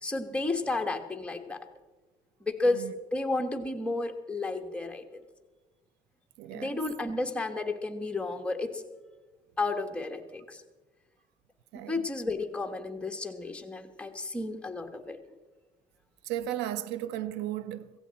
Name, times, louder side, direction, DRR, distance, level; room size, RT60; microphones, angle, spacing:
voice 1, 0.0-1.7 2.4-5.0 6.5-8.8 9.6-10.6 11.7-15.2, left 2 dB, 5° left, 1.3 m, -32 dB
voice 2, 6.4-6.8 11.7-12.0 16.3-17.9, right 12 dB, 90° right, 0.6 m, -35 dB
16.0 x 16.0 x 4.2 m
cardioid pair, 110°, 17 cm